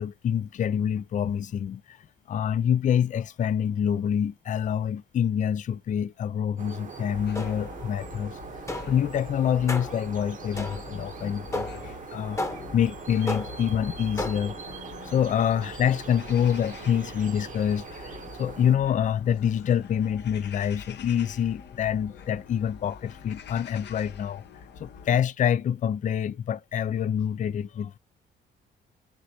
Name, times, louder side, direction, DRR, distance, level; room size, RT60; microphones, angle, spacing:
voice 1, 0.0-2.0 2.3-8.4 8.9-12.4 12.7-14.6 15.1-24.4 24.8-28.0, left 9 dB, 40° left, 0.4 m, -26 dB
sound 1, 6.6-18.8, right 5 dB, 40° right, 1.0 m, -42 dB
sound 2, 7.1-25.2, left 6 dB, 60° left, 0.8 m, -45 dB
sound 3, 7.3-7.9 8.7-9.1 9.7-10.1 10.6-11.0 11.5-11.9 12.4-12.8 13.3-13.7 14.2-14.6, left 1 dB, 15° left, 1.0 m, -34 dB
6.0 x 2.6 x 2.8 m
cardioid pair, 90°, 20 cm